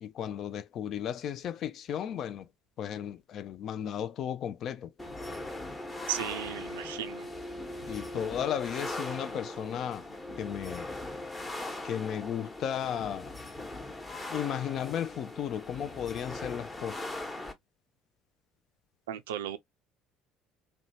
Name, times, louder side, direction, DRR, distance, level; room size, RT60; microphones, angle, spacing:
voice 1, 0.0-2.5 2.8-4.9 7.9-10.1 10.4-10.9 11.8-13.3 14.3-17.1, left 9 dB, 55° left, 0.3 m, -34 dB
sound 1, 5.0-17.5, left 2 dB, 20° left, 1.0 m, -40 dB
voice 2, 6.1-7.3 19.1-19.6, right 10 dB, 80° right, 0.3 m, -35 dB
2.7 x 2.2 x 2.6 m
hypercardioid pair, 60°, 0 cm